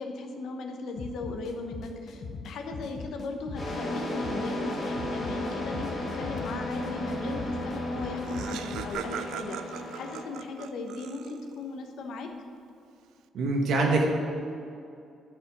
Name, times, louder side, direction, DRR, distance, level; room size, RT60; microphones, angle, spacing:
voice 1, 0.0-12.3, left 3 dB, 70° left, 4 dB, 1.0 m, -37 dB
sound 1, 1.0-8.9, left 4 dB, 40° left, 0.8 m, -41 dB
sound 2, 3.6-10.2, left 1 dB, 15° left, 2.1 m, -34 dB
Laughter, 7.7-7.8 8.0-11.6, right 9 dB, 85° right, 0.4 m, -40 dB
voice 2, 13.3-14.0, right 3 dB, 60° right, 0 dB, 1.6 m, -24 dB
11.0 x 5.0 x 6.0 m, 2.6 s
cardioid pair, 170°, 0 cm